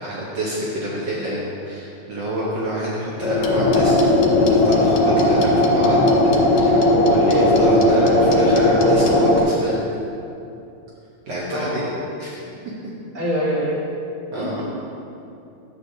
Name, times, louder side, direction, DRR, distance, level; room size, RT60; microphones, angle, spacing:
voice 1, 0.0-9.8 11.3-11.8 12.2-12.4 14.3-14.6, right 1 dB, 70° right, -6 dB, 1.1 m, -27 dB
sound 1, 3.2-9.4, left 1 dB, 45° left, 1.4 m, -16 dB
sound 2, 3.4-9.1, left 6 dB, 70° left, 2.1 m, -33 dB
voice 2, 13.1-13.7 14.3-14.6, equal, 35° right, -8 dB, 2.4 m, -24 dB
11.5 x 7.8 x 2.7 m, 2.7 s
omnidirectional pair, 3.5 m